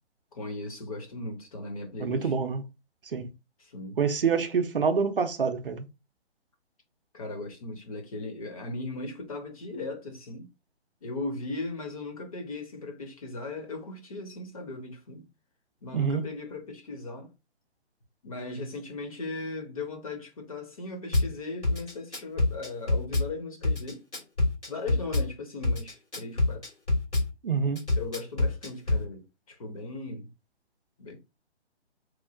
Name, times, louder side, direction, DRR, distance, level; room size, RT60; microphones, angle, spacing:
voice 1, 0.3-2.3 3.6-4.0 7.1-10.5 11.0-15.2 15.8-17.3 18.2-24.0 24.7-26.7 27.9-30.3 31.0-31.2, left 2 dB, 35° left, 0.7 m, -38 dB
voice 2, 2.0-2.6 3.0-3.3 4.0-5.8 15.9-16.2 27.4-27.8, right 5 dB, 55° right, 0.5 m, -26 dB
Drum kit / Bass drum, 21.1-21.3 21.6-23.3 23.6-25.3 25.6-27.3 27.8-29.0, left 2 dB, 85° left, 1.8 m, -26 dB
3.0 x 2.4 x 2.4 m
figure-of-eight pair, 135°, 34 cm